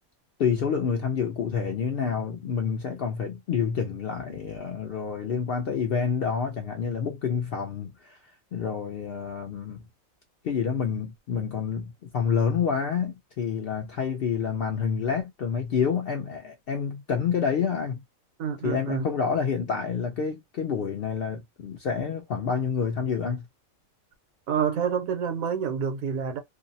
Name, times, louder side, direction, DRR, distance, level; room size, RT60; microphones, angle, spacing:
voice 1, 0.4-8.2 8.5-9.8 10.4-18.0 18.6-23.5, left 6 dB, 70° left, 0.5 m, -28 dB
voice 2, 18.4-19.0 24.5-26.4, right 7 dB, 80° right, 1.1 m, -28 dB
2.6 x 2.0 x 2.6 m
omnidirectional pair, 1.4 m